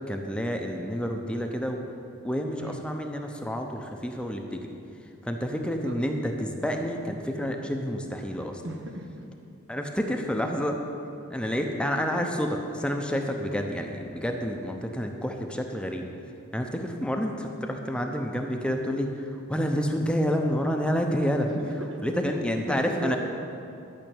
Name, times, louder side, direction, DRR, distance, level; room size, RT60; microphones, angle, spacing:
voice 1, 0.1-1.9 2.2-4.7 5.2-8.6 9.7-10.8 11.3-16.1 16.5-21.5 22.0-23.2, equal, 5° left, 3 dB, 0.7 m, -29 dB
voice 2, 5.6-6.0 8.6-9.3 21.4-22.1 22.6-23.2, right 1 dB, 70° right, 3 dB, 1.3 m, -37 dB
12.0 x 5.7 x 8.9 m, 2.6 s
head